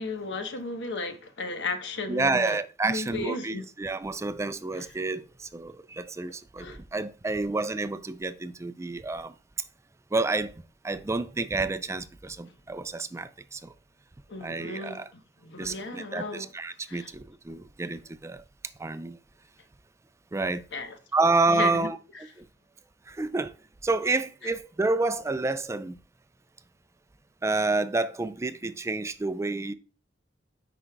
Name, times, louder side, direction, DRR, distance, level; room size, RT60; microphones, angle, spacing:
voice 1, 0.0-2.6 2.8-3.7 4.7-4.9 6.6-6.8 14.3-15.0 15.4-16.5 16.9-17.1 20.7-21.0 21.5-21.9 22.1-22.3 24.4-24.5, left 3 dB, 75° left, 1.1 m, -35 dB
voice 2, 2.1-9.3 10.1-10.5 10.8-13.7 14.4-15.1 15.6-18.4 18.8-19.2 20.3-20.6 21.1-22.0 22.4-22.5 23.1-23.5 23.8-26.0 27.4-29.7, right 3 dB, 15° right, 0.3 m, -29 dB
9.6 x 5.0 x 2.3 m
head